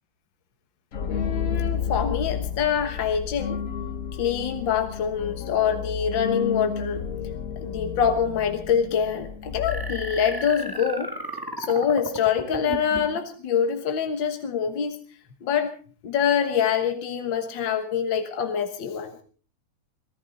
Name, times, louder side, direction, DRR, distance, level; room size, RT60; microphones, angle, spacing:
sound 1, 0.9-10.6, left 7 dB, 45° left, 1.3 m, -31 dB
voice 1, 1.1-3.6 4.2-7.0 7.6-11.1 11.6-15.0 15.4-15.7 16.0-19.2, left 7 dB, 65° left, 7 dB, 2.1 m, -25 dB
sound 2, 9.7-13.2, right 1 dB, 10° right, 1.7 m, -34 dB
23.0 x 15.0 x 4.1 m, 0.40 s
omnidirectional pair, 2.3 m